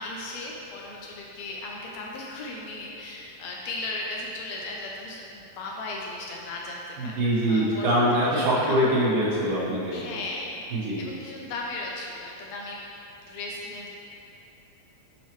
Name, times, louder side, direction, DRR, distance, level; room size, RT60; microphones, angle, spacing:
voice 1, 0.0-8.0 8.3-8.8 9.9-12.8 13.3-13.9, left 2 dB, 80° left, -2 dB, 1.7 m, -36 dB
voice 2, 7.0-10.0 10.7-11.0, right 1 dB, 90° right, -7 dB, 2.9 m, -23 dB
7.3 x 5.8 x 3.0 m, 2.9 s
omnidirectional pair, 3.5 m